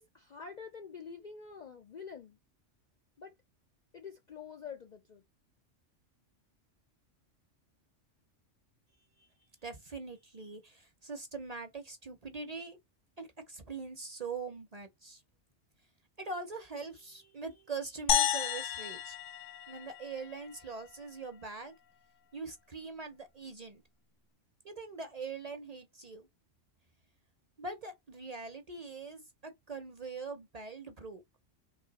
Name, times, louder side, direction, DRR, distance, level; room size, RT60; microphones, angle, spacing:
voice 1, 0.0-2.4 3.2-3.3 3.9-5.2, left 6 dB, 55° left, 0.5 m, -47 dB
voice 2, 9.6-12.8 13.2-15.2 16.2-19.2 19.7-21.7 22.3-23.8 24.6-26.3 27.6-31.2, right 4 dB, 40° right, 0.7 m, -43 dB
sound 1, 18.1-20.5, left 10 dB, 85° left, 1.0 m, -32 dB
3.2 x 2.9 x 4.0 m
omnidirectional pair, 1.3 m